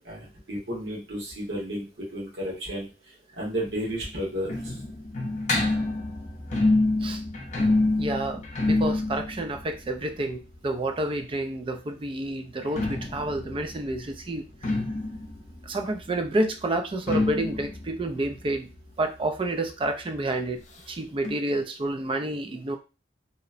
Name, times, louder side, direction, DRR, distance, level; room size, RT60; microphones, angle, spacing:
voice 1, 0.0-1.9 2.1-2.9 3.3-4.7, equal, 85° right, -5 dB, 1.2 m, -32 dB
sound 1, 3.7-11.4 12.5-19.9 20.1-20.2 20.5-20.6 21.2-21.3, left 2 dB, 40° left, 0.6 m, -28 dB
voice 2, 8.0-14.5 15.6-18.7 19.0-22.8, right 1 dB, 30° right, 6 dB, 0.3 m, -29 dB
2.9 x 2.0 x 2.5 m, 0.31 s
head